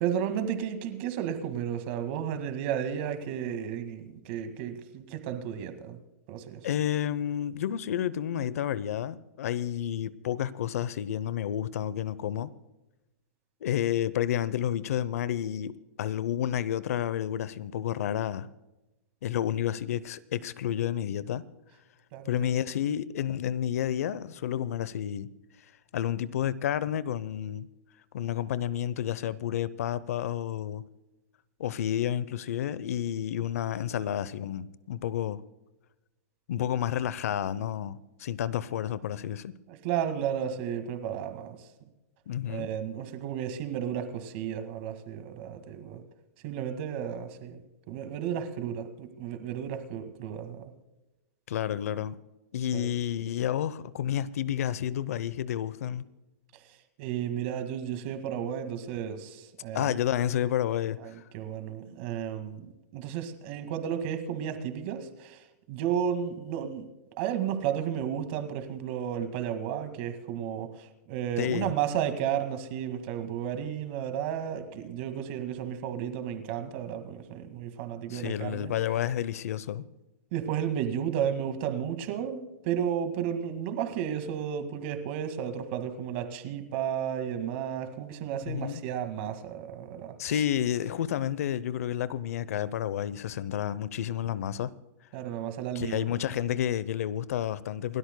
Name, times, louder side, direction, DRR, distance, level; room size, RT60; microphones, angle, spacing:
voice 1, 0.0-6.0 6.3-6.7 22.1-22.6 39.7-41.7 42.5-46.0 46.4-50.7 52.7-52.9 56.5-60.0 61.0-66.8 67.2-78.7 80.3-90.4 95.1-96.2, right 9 dB, 45° right, 2.0 m, -33 dB
voice 2, 6.6-12.5 13.6-18.5 19.2-21.4 22.3-25.3 25.9-27.7 28.1-30.9 31.6-35.4 36.5-39.5 42.3-42.7 51.5-52.2 52.5-56.1 59.7-61.2 71.4-71.7 78.1-79.8 88.5-88.8 90.2-94.7 95.7-98.0, left 10 dB, 70° left, 0.7 m, -30 dB
29.0 x 13.0 x 2.2 m
hypercardioid pair, 150°, 8 cm